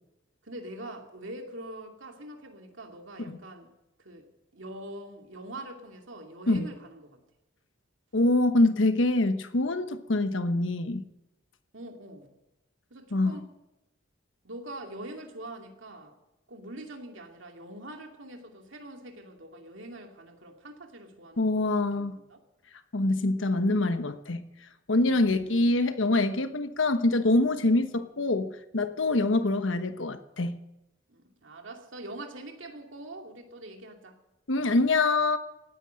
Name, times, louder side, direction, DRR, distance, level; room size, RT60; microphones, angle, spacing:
voice 1, 0.4-3.7 4.0-4.3 4.5-7.2 11.7-12.3 12.9-13.5 14.4-16.1 16.5-21.5 21.7-22.4 25.0-25.7 27.7-27.8 29.3-29.4 31.1-34.2, right 1 dB, 85° right, 3 dB, 2.5 m, -44 dB
voice 2, 8.1-11.0 13.1-13.4 21.4-22.2 22.9-24.4 24.9-30.6 34.5-35.4, left 2 dB, 90° left, 10 dB, 1.1 m, -25 dB
17.5 x 9.8 x 7.7 m, 0.96 s
head